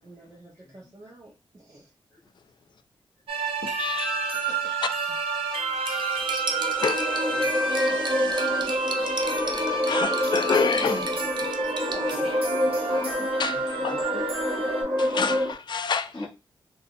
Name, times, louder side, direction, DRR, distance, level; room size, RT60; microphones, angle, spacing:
voice 1, 0.0-1.9 4.3-5.1 11.1-11.5, right 2 dB, 35° right, 1.0 m, -51 dB
sound 1, 3.3-14.8, right 3 dB, 85° right, 1.0 m, -29 dB
voice 2, 3.6-4.4 6.8-8.6 9.9-11.0 12.9-14.0 15.0-16.1, left 6 dB, 55° left, 0.4 m, -30 dB
Cutlery silverware, 5.9-12.1, right 3 dB, 55° right, 0.5 m, -36 dB
sound 2, 6.1-15.5, left 1 dB, 15° right, 1.2 m, -28 dB
voice 3, 10.7-11.0 11.9-12.4 13.9-14.6 16.1-16.3, left 2 dB, 5° left, 1.2 m, -38 dB
3.4 x 2.6 x 2.4 m
wide cardioid pair, 95°, 9 cm